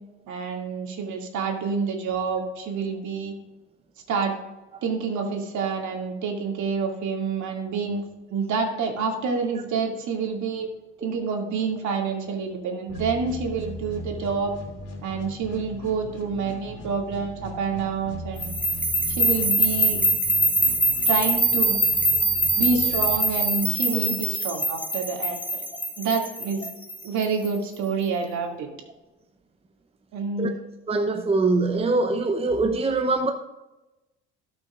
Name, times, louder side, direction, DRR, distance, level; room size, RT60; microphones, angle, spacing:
voice 1, 0.3-3.3 4.1-4.4 4.8-8.0 8.3-10.7 11.0-14.5 15.0-18.5 19.1-20.0 21.1-21.8 22.6-25.6 26.0-26.7 27.0-28.7 30.1-30.5, right 5 dB, 60° right, 2.5 m, -27 dB
sound 1, 12.9-23.8, equal, 45° left, 2.8 m, -39 dB
sound 2, 18.4-27.5, right 1 dB, 5° left, 2.2 m, -23 dB
voice 2, 30.9-33.3, right 3 dB, 15° right, 0.8 m, -23 dB
18.0 x 6.4 x 2.5 m
hypercardioid pair, 60°, 34 cm